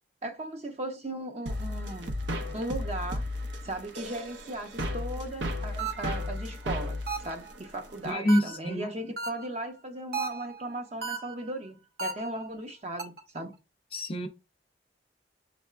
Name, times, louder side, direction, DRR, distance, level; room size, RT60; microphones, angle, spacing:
voice 1, 0.2-2.1 2.5-3.2 3.6-13.5, right 1 dB, 40° right, 0.7 m, -37 dB
sound 1, 1.5-8.1, left 1 dB, 85° right, 0.7 m, -34 dB
sound 2, 5.8-6.3 7.1-7.5 8.3-8.7 9.2-9.6 10.1-10.6 11.0-11.5 12.0-12.5 13.0-13.4, right 4 dB, 60° right, 0.9 m, -35 dB
voice 2, 8.0-8.9 13.9-14.3, equal, 30° left, 0.6 m, -26 dB
6.4 x 3.4 x 2.4 m
head